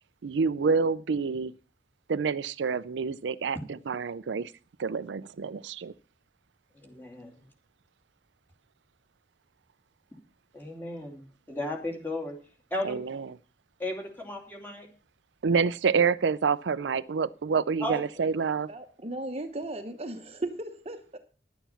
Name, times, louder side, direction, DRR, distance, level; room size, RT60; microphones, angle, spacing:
voice 1, 0.2-1.5 2.1-3.6 3.9-4.5 4.8-5.9 12.8-13.3 15.4-18.7, right 5 dB, 85° right, 0.5 m, -27 dB
voice 2, 6.7-7.4 10.5-12.4 12.7-13.0 13.8-14.9 17.8-18.0, left 1 dB, 10° left, 2.8 m, -35 dB
voice 3, 18.7-21.2, right 2 dB, 35° right, 1.0 m, -36 dB
11.5 x 9.1 x 5.7 m
head